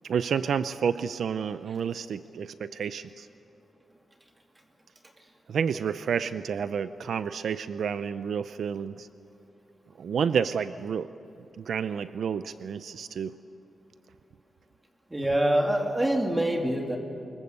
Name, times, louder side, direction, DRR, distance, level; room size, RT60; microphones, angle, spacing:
voice 1, 0.0-3.3 5.5-9.1 10.0-11.1 11.6-13.3, right 7 dB, 70° right, 13 dB, 0.5 m, -30 dB
voice 2, 15.1-17.0, right 1 dB, 15° right, 2 dB, 2.7 m, -25 dB
25.0 x 22.0 x 8.1 m, 2.9 s
wide cardioid pair, 145°, 0 cm